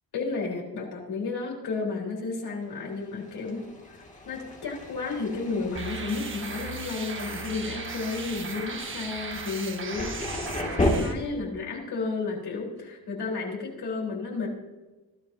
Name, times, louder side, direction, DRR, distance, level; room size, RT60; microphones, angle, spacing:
voice 1, 0.1-10.1 10.6-14.5, left 4 dB, 80° left, -2 dB, 3.9 m, -32 dB
Thunder, 2.8-10.9, left 2 dB, 20° left, 2.2 m, -35 dB
sound 1, 5.7-11.1, right 5 dB, 30° right, 1.4 m, -37 dB
20.0 x 14.0 x 2.7 m, 1.2 s
wide cardioid pair, 180°, 38 cm